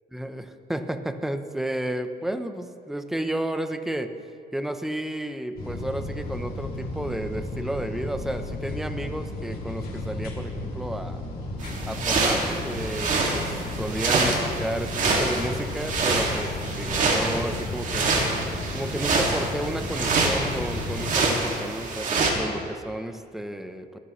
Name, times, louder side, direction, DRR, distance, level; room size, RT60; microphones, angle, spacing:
voice 1, 0.1-4.1 4.5-11.2 11.9-18.1 18.7-24.0, right 1 dB, ahead, 8 dB, 0.8 m, -32 dB
sound 1, 5.6-21.2, left 2 dB, 60° left, 2.8 m, -34 dB
sound 2, 11.6-22.3, right 3 dB, 50° right, 2.3 m, -26 dB
21.0 x 11.0 x 3.2 m, 2.4 s
cardioid pair, 110°, 17 cm